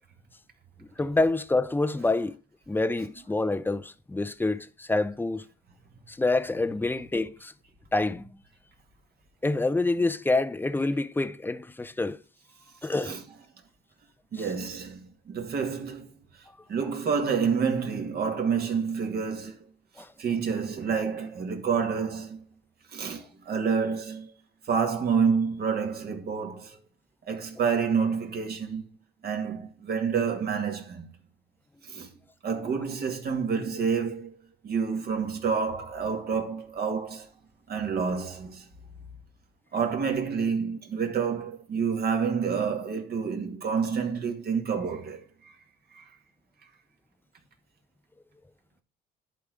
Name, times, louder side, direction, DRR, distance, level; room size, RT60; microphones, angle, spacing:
voice 1, 0.8-2.4 2.7-5.4 6.1-7.5 7.9-8.2 9.4-12.2 12.8-13.2 14.3-14.5 20.0-20.1, left 2 dB, 10° left, 0.7 m, -27 dB
voice 2, 14.3-16.1 16.7-19.5 20.2-22.4 22.9-24.3 24.7-26.8 27.3-28.9 29.2-31.1 31.9-32.1 32.4-34.3 34.6-37.3 37.7-38.7 39.7-45.5 45.9-46.0, right 6 dB, 50° right, 2.4 m, -28 dB
11.0 x 4.8 x 5.3 m
supercardioid pair, 85°, 20 cm